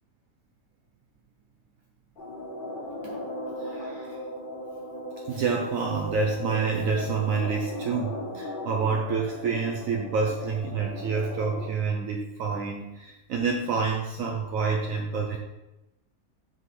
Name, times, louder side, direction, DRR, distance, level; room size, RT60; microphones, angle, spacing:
sound 1, 2.2-11.7, left 1 dB, 40° left, 1.1 m, -37 dB
voice 1, 3.6-4.2 5.3-15.4, right 5 dB, 70° right, 1 dB, 1.0 m, -28 dB
5.7 x 5.2 x 3.3 m, 0.97 s
omnidirectional pair, 1.6 m